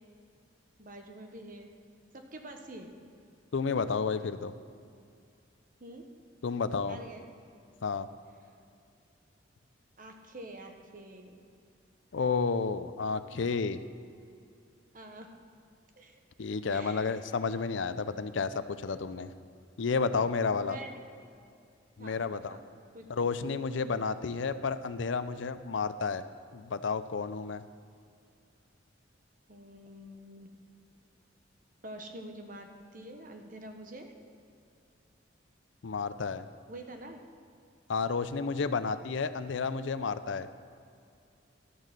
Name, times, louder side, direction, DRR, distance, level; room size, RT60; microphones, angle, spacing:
voice 1, 0.8-1.7 2.1-2.9 5.8-6.1 6.9-7.2 8.5-8.6 10.0-11.3 14.9-15.3 16.0-16.2 16.7-17.2 20.6-21.0 22.0-22.6 22.9-23.1 23.8-24.0 29.5-30.5 31.8-34.1 36.7-37.2, right 1 dB, 45° right, 4 dB, 1.2 m, -46 dB
voice 2, 3.5-4.5 6.4-7.0 7.8-8.1 12.1-13.8 16.4-19.3 19.8-20.8 22.0-22.6 23.1-26.2 26.5-27.6 35.8-36.5 37.9-40.5, left 5 dB, 75° left, 12 dB, 0.5 m, -31 dB
12.5 x 6.5 x 7.4 m, 2.4 s
head